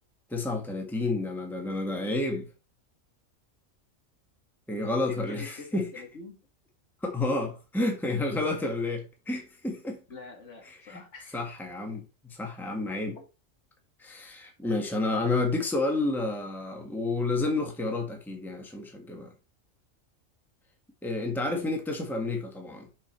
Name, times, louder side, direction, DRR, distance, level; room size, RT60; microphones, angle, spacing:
voice 1, 0.3-2.5 4.7-5.9 7.0-10.0 10.7-11.0 11.3-13.2 14.0-19.3 21.0-22.9, left 2 dB, ahead, 1.5 m, -30 dB
voice 2, 4.9-6.5 10.1-11.4 13.1-13.3, left 3 dB, 65° left, 2.3 m, -46 dB
6.3 x 6.0 x 4.4 m
omnidirectional pair, 1.4 m